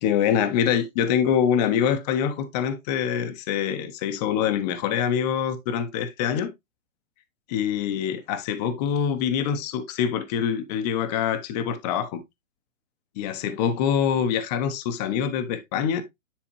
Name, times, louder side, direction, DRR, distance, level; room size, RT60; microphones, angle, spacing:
voice 1, 0.0-6.5 7.5-12.2 13.2-16.0, left 8 dB, 30° left, 1.1 m, -25 dB
10.5 x 4.1 x 3.1 m
hypercardioid pair, 140°, 40 cm